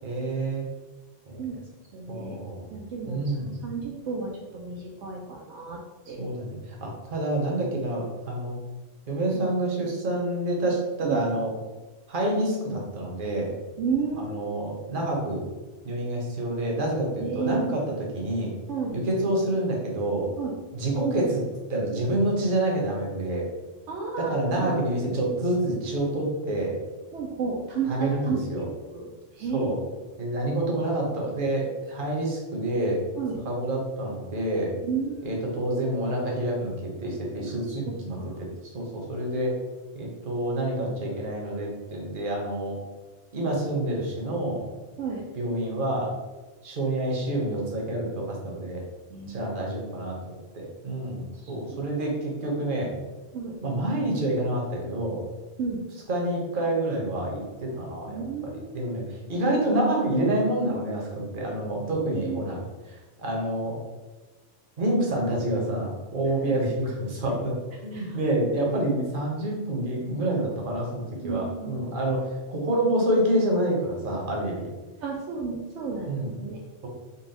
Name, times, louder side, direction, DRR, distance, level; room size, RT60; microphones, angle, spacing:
voice 1, 0.0-0.6 1.3-1.4 2.1-2.7 3.1-3.5 6.2-8.6 9.1-11.5 12.1-13.5 14.2-15.4 15.8-17.8 18.1-18.5 18.9-20.3 20.7-21.4 21.7-23.4 24.2-26.7 27.8-28.7 29.4-29.8 30.2-33.0 33.4-34.8 35.2-36.7 37.0-38.5 38.7-39.5 39.9-42.8 43.3-44.6 45.3-46.1 46.6-48.8 49.2-52.9 53.6-55.2 56.1-62.6 62.9-63.8 64.8-67.5 67.8-74.7 76.1-76.4, right 1 dB, 45° right, -2 dB, 1.0 m, -28 dB
voice 2, 1.9-2.4 2.7-3.3 3.6-5.8 6.1-6.2 9.3-9.5 11.0-11.2 13.8-14.6 17.2-17.8 18.7-19.0 20.4-20.5 23.9-24.8 27.1-29.1 29.4-29.7 33.2-33.4 34.8-35.4 37.7-38.4 45.0-45.2 49.1-49.5 51.7-51.8 53.3-53.5 55.6-55.8 58.1-59.0 62.1-62.4 67.9-68.2 71.2-71.8 75.0-76.6, right 5 dB, 70° right, -2 dB, 0.8 m, -32 dB
4.0 x 2.3 x 3.9 m, 1.2 s
omnidirectional pair, 1.3 m